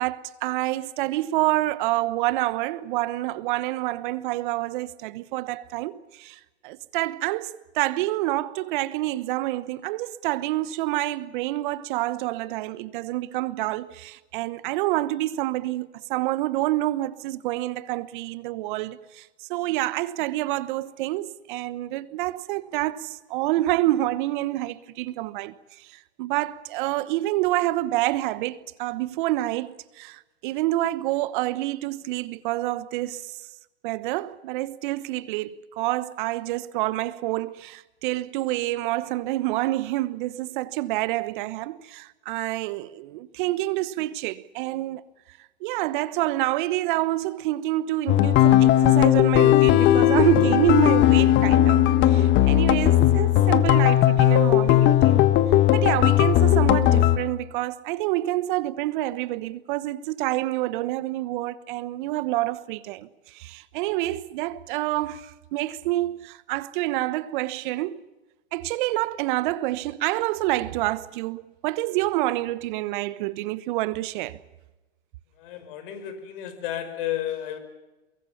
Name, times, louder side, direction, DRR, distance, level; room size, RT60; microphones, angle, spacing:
voice 1, 0.0-33.3 33.8-45.0 45.6-55.3 55.7-68.0 68.5-74.4, right 16 dB, 50° right, 1.2 m, -27 dB
sound 1, 48.1-57.2, left 13 dB, 35° left, 1.5 m, -17 dB
voice 2, 75.4-77.6, left 11 dB, 55° left, 5.2 m, -32 dB
23.5 x 22.5 x 7.2 m
hypercardioid pair, 115°, 33 cm